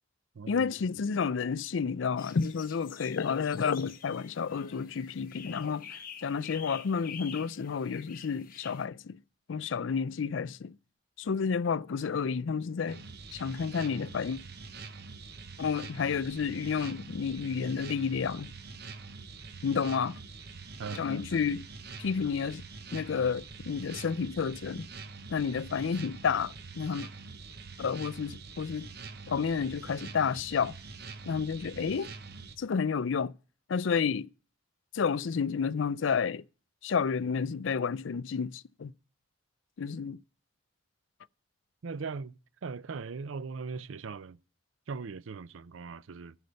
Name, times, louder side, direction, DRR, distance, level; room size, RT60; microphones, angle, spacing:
voice 1, 0.5-9.2 9.5-10.7 11.2-13.0 13.3-14.4 15.6-18.5 19.6-20.1 20.9-21.6 22.0-22.6 22.9-24.9 25.3-27.1 27.8-28.9 29.3-30.7 31.3-32.1 32.6-33.3 33.7-34.3 34.9-36.4 36.8-38.9 39.8-40.2, left 6 dB, 75° left, 0.4 m, -30 dB
sound 1, 2.2-8.8, left 8 dB, 45° left, 1.3 m, -48 dB
sound 2, 12.9-32.6, right 4 dB, 55° right, 1.1 m, -45 dB
voice 2, 20.8-21.4 41.8-44.4 44.9-46.3, right 5 dB, 90° right, 0.5 m, -40 dB
15.0 x 6.5 x 5.2 m
head